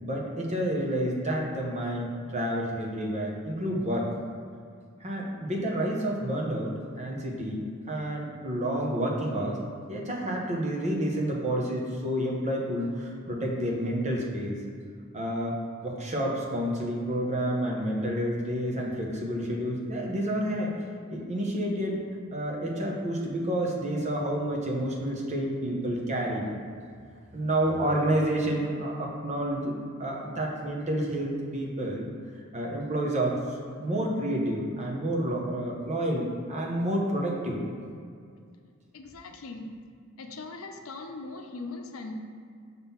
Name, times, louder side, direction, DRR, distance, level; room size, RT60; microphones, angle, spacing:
voice 1, 0.0-4.1 5.0-7.6 7.9-9.6 9.9-14.6 15.1-15.6 15.8-20.7 21.1-22.0 22.3-26.5 27.3-32.1 32.5-33.4 33.8-37.6, right 1 dB, 35° right, -2 dB, 1.0 m, -29 dB
voice 2, 38.9-39.7 40.2-42.1, left 3 dB, 75° left, 4 dB, 0.6 m, -40 dB
5.7 x 3.8 x 5.7 m, 2.2 s
head